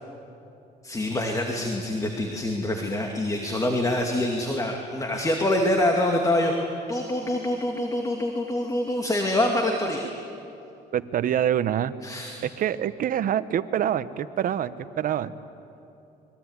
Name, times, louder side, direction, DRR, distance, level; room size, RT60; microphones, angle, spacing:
voice 1, 0.8-10.0 12.0-12.4, left 1 dB, 20° left, 2 dB, 2.5 m, -25 dB
voice 2, 10.9-11.9 12.4-15.3, right 10 dB, 55° right, 14 dB, 1.0 m, -26 dB
26.5 x 22.5 x 9.8 m, 2.8 s
cardioid pair, 110°, 17 cm